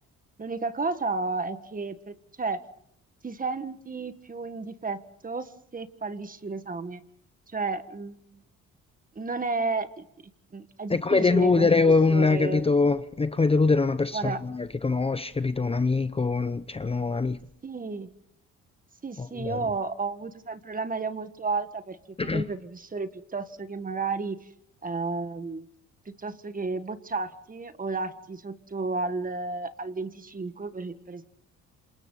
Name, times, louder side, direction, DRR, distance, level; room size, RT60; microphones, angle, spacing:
voice 1, 0.4-2.6 3.2-7.0 7.5-8.1 9.1-10.1 10.5-12.6 14.1-14.4 17.6-18.1 19.0-24.4 24.8-25.7 26.0-31.3, right 3 dB, 30° right, 1.7 m, -32 dB
voice 2, 10.9-17.4 19.2-19.6 22.2-22.4, left 4 dB, 20° left, 0.8 m, -23 dB
27.5 x 27.5 x 4.1 m
cardioid pair, 90°, 30 cm